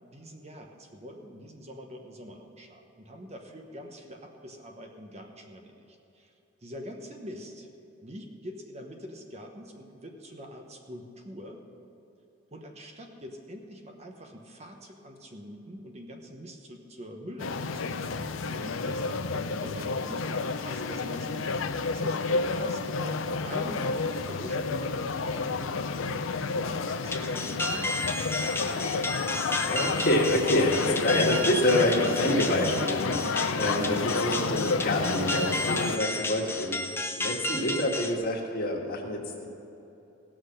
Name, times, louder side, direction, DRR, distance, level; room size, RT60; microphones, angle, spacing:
voice 1, 0.1-6.3 6.6-7.7 8.0-11.6 12.5-22.8 23.4-29.0, equal, 35° right, 3 dB, 1.1 m, -44 dB
sound 1, 17.4-36.0, left 4 dB, 80° left, 0.6 m, -30 dB
sound 2, 27.1-38.1, left 2 dB, 10° left, 0.6 m, -33 dB
voice 2, 29.7-36.8 37.2-39.5, left 1 dB, 50° left, -1 dB, 1.7 m, -27 dB
17.0 x 6.2 x 6.6 m, 3.0 s
head